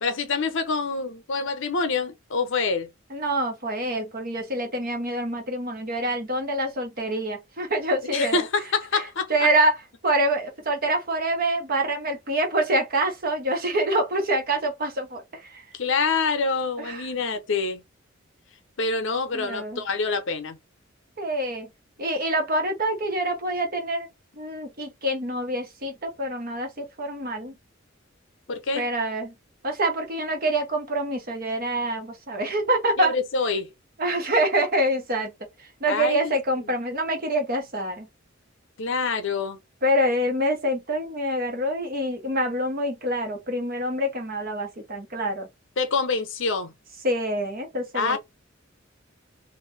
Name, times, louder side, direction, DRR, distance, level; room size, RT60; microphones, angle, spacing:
voice 1, 0.0-2.9 8.1-9.3 15.7-17.8 18.8-20.6 28.5-28.9 33.0-33.7 35.9-36.3 36.6-36.7 38.8-39.6 45.8-46.7 47.9-48.2, left 4 dB, 65° left, 0.7 m, -26 dB
voice 2, 3.1-8.4 9.3-9.8 10.0-15.6 16.8-17.0 19.3-19.8 21.2-21.7 22.0-24.1 24.4-27.5 28.7-29.3 29.6-33.1 34.0-35.3 35.8-38.1 39.8-45.5 47.0-48.2, right 1 dB, 45° right, 1.0 m, -26 dB
2.8 x 2.5 x 3.2 m
head